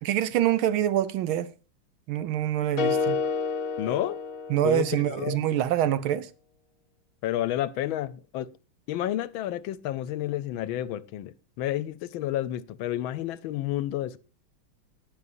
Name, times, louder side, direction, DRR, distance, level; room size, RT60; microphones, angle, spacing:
voice 1, 0.0-1.5 2.1-3.2 4.5-6.3, right 11 dB, 80° right, 1.6 m, -25 dB
sound 1, 2.8-5.1, left 5 dB, 50° left, 1.2 m, -29 dB
voice 2, 3.8-4.2 4.6-5.4 7.2-8.5 8.9-14.2, left 13 dB, 80° left, 1.4 m, -30 dB
19.5 x 6.7 x 2.6 m
omnidirectional pair, 2.3 m